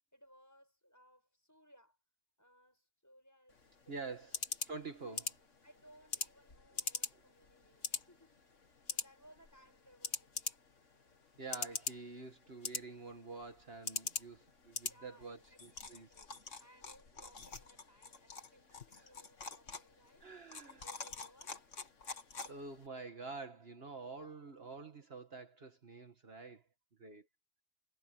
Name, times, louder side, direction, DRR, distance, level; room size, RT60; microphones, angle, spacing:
voice 1, 0.1-2.0 2.4-3.9 4.2-4.5 5.0-5.2 5.6-8.4 8.9-10.7 14.9-16.3 16.6-20.3 20.6-21.9 22.3-22.4, equal, 15° left, 6.1 m, -64 dB
sound 1, 3.5-22.9, left 4 dB, 90° left, 2.3 m, -45 dB
voice 2, 3.9-5.3 7.1-7.2 11.4-16.1 17.2-17.3 19.0-19.1 20.2-20.8 22.5-26.6 27.0-27.3, right 3 dB, 55° right, 1.9 m, -48 dB
omnidirectional pair, 1.2 m